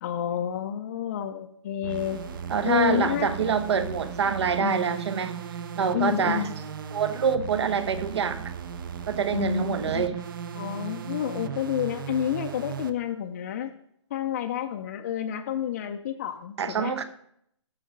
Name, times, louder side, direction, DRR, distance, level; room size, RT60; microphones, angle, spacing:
voice 1, 0.0-2.2 2.6-3.6 4.5-5.0 5.9-6.5 9.3-10.2 10.5-13.7 14.1-16.9, left 10 dB, 30° left, 4 dB, 0.5 m, -29 dB
sound 1, 1.8-13.0, right 7 dB, 45° right, 0.6 m, -37 dB
voice 2, 2.5-5.5 5.7-6.5 6.9-8.5 9.1-10.2 16.6-17.0, right 6 dB, 60° right, 11 dB, 1.0 m, -26 dB
8.6 x 6.4 x 5.1 m, 0.69 s
hypercardioid pair, 155°, 16 cm